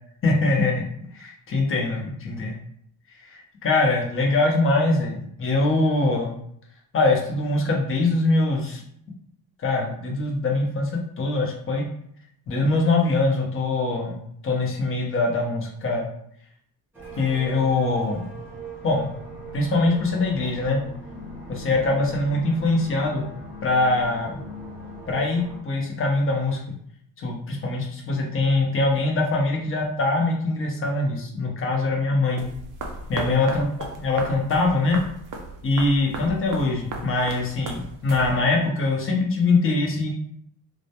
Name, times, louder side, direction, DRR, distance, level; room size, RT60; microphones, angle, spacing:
voice 1, 0.2-0.9 1.1-2.6 3.3-6.4 6.9-8.8 9.6-11.8 12.5-16.1 17.2-18.3 18.8-19.1 19.5-20.8 21.5-23.2 23.6-24.4 25.1-26.6 27.2-32.4 33.1-33.6 34.0-35.0 35.6-40.1, left 2 dB, 35° left, 0 dB, 0.6 m, -23 dB
sound 1, 16.9-25.6, equal, 5° right, 0.7 m, -40 dB
sound 2, 32.4-38.7, right 3 dB, 50° right, 0.5 m, -36 dB
2.1 x 2.1 x 2.7 m, 0.68 s
cardioid pair, 135°, 40 cm